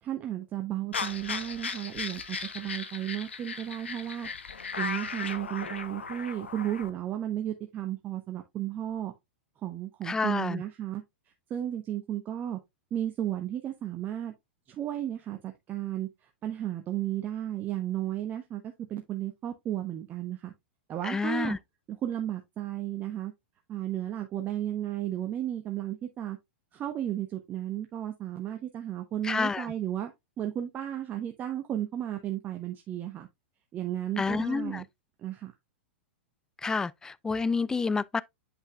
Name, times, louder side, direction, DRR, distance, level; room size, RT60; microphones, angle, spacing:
voice 1, 0.0-4.3 4.8-9.1 9.6-11.0 11.5-12.6 12.9-14.3 14.7-16.1 16.4-20.5 20.9-21.6 21.9-23.3 23.7-26.4 26.7-30.1 30.4-33.3 33.7-34.8 35.2-35.5, right 12 dB, 30° right, 0.8 m, -34 dB
sound 1, 0.9-6.9, left 5 dB, 80° left, 1.0 m, -37 dB
voice 2, 10.0-10.6 21.0-21.6 29.2-29.7 34.2-34.8 36.6-38.2, left 4 dB, 10° left, 0.3 m, -29 dB
8.1 x 5.4 x 2.3 m
figure-of-eight pair, 100°, 6 cm